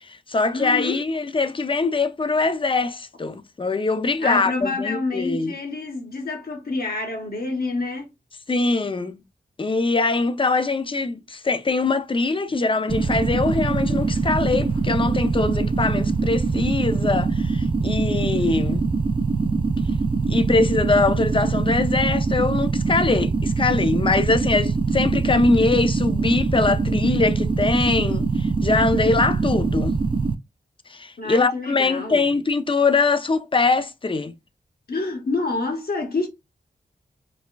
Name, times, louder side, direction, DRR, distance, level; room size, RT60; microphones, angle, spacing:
voice 1, 0.0-5.5 8.5-9.2 9.6-18.9 20.3-29.9 30.9-34.3, left 3 dB, 30° left, 0.5 m, -22 dB
voice 2, 0.5-1.0 4.2-8.1 12.5-12.7 31.2-32.3 34.9-36.3, left 3 dB, 55° left, 1.2 m, -27 dB
sound 1, 12.9-30.3, right 4 dB, 30° right, 0.4 m, -23 dB
4.0 x 2.2 x 2.3 m
cardioid pair, 45°, 18 cm